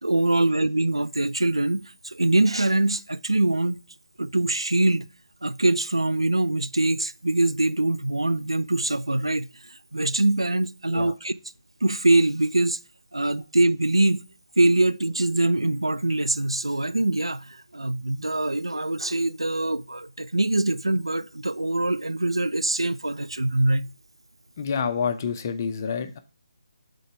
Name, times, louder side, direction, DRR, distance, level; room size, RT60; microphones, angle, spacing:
voice 1, 0.0-3.8 4.2-5.1 5.4-11.3 11.8-12.8 13.1-14.2 14.6-23.9, right 2 dB, 85° right, 0.3 m, -23 dB
voice 2, 24.6-26.2, left 6 dB, 35° left, 0.6 m, -28 dB
7.9 x 3.9 x 4.5 m
figure-of-eight pair, 145°, 3 cm